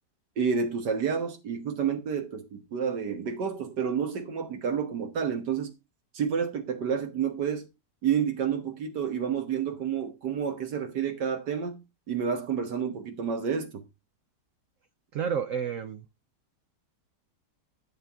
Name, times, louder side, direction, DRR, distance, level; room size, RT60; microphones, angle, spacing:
voice 1, 0.4-5.7 6.1-7.7 8.0-13.9, right 7 dB, 80° right, 1.8 m, -29 dB
voice 2, 15.1-16.1, right 7 dB, 60° right, 0.9 m, -30 dB
10.0 x 7.5 x 3.5 m
omnidirectional pair, 1.8 m